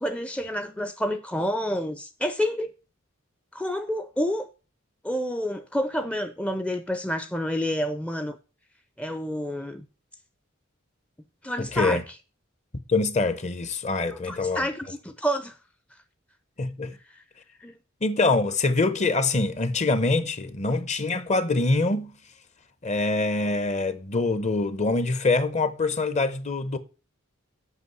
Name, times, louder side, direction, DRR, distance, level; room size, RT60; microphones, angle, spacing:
voice 1, 0.0-2.7 3.5-4.5 5.0-8.4 9.0-9.9 11.4-12.0 14.1-15.6 17.1-17.2 17.6-17.8, equal, 5° left, 0.5 m, -29 dB
voice 2, 11.6-12.0 12.9-14.7 16.6-16.9 18.0-22.1 22.8-26.8, left 3 dB, 35° left, 0.8 m, -24 dB
8.2 x 5.7 x 7.8 m
head